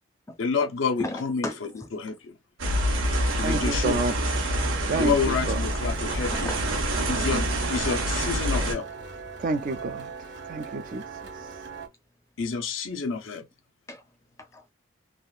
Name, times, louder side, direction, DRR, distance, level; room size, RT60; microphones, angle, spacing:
voice 1, 0.4-1.5 1.9-2.3 3.4-4.1 5.0-6.5 7.1-7.4 7.7-8.8 12.4-13.5, left 5 dB, 75° left, 0.6 m, -28 dB
voice 2, 1.0-1.9 2.9-3.0 5.0-5.2 6.3-6.8 7.3-7.5 13.9-14.0 14.5-14.7, left 1 dB, 15° left, 0.5 m, -35 dB
sound 1, 2.6-8.7, right 1 dB, 90° right, 1.2 m, -26 dB
voice 3, 3.4-4.2 4.9-5.6 9.4-10.1 10.5-11.0, right 3 dB, 40° right, 0.3 m, -28 dB
sound 2, 5.5-11.9, right 5 dB, 60° right, 0.8 m, -39 dB
3.5 x 2.5 x 2.3 m
head